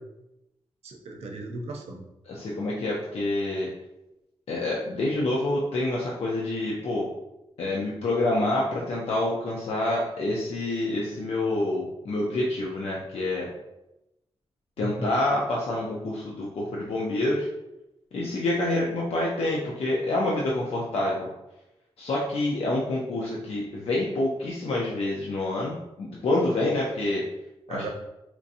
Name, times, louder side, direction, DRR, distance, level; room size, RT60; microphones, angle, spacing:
voice 1, 0.8-2.0 14.8-15.0 27.7-27.9, right 2 dB, 85° right, 2 dB, 0.6 m, -36 dB
voice 2, 2.3-3.7 4.5-7.1 7.6-13.5 14.8-17.5 18.1-21.3 22.0-27.2 27.7-27.9, left 2 dB, 75° left, -4 dB, 0.6 m, -27 dB
4.4 x 2.7 x 2.6 m, 0.92 s
wide cardioid pair, 180°, 10 cm